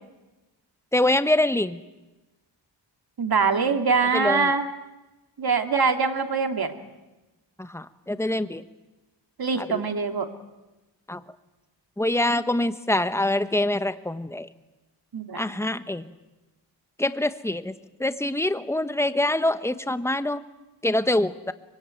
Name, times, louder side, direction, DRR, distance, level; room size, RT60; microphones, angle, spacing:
voice 1, 0.9-1.8 4.1-4.5 7.6-8.6 9.6-9.8 11.1-11.2 12.0-14.5 15.3-16.1 17.0-17.7 18.0-20.4 20.8-21.5, left 1 dB, 5° left, 11 dB, 1.2 m, -25 dB
voice 2, 3.2-4.7 5.4-6.7 9.4-10.3 15.1-15.4, right 5 dB, 50° right, 6 dB, 2.7 m, -23 dB
24.5 x 23.5 x 9.1 m, 1.1 s
wide cardioid pair, 95°, 46 cm